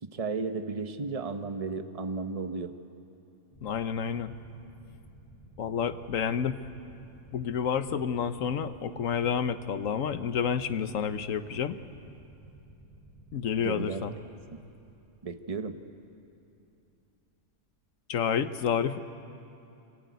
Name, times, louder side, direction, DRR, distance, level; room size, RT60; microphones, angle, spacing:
voice 1, 0.0-2.7 13.6-14.6 15.2-15.8, right 4 dB, 25° right, 7 dB, 1.1 m, -34 dB
sound 1, 3.5-16.7, right 1 dB, 20° left, 6.9 m, -54 dB
voice 2, 3.6-4.3 5.6-6.6 7.3-11.8 13.3-14.1 18.1-19.0, left 7 dB, 65° left, 11 dB, 1.3 m, -29 dB
25.0 x 24.5 x 9.5 m, 2.7 s
omnidirectional pair, 1.5 m